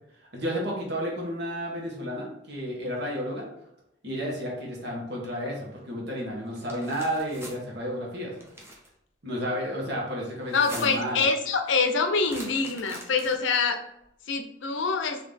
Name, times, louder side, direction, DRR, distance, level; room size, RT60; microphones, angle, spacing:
voice 1, 0.3-3.5 4.0-8.3 9.2-11.2, equal, 60° right, -2 dB, 1.2 m, -32 dB
sound 1, 6.5-7.6 8.3-8.9 10.4-11.1 12.2-13.6, right 1 dB, 15° right, 0.6 m, -43 dB
voice 2, 10.5-13.8 14.3-15.2, left 4 dB, 70° left, 6 dB, 0.5 m, -25 dB
4.0 x 2.8 x 3.4 m, 0.78 s
head